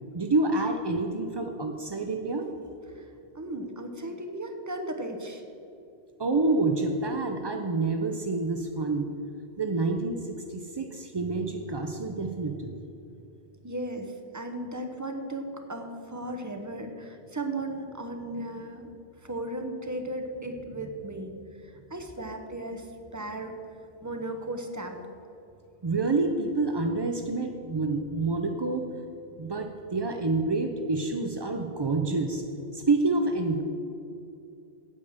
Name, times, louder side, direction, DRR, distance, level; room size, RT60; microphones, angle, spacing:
voice 1, 0.1-2.5 6.2-9.1 9.6-12.7 25.8-28.9 29.4-32.4 32.7-33.6, right 3 dB, 45° right, 4 dB, 0.3 m, -28 dB
voice 2, 3.3-5.4 13.6-18.9 19.2-21.3 21.6-23.5 24.0-25.0, right 1 dB, 15° right, 4 dB, 0.8 m, -36 dB
8.7 x 8.3 x 6.5 m, 2.7 s
omnidirectional pair, 1.3 m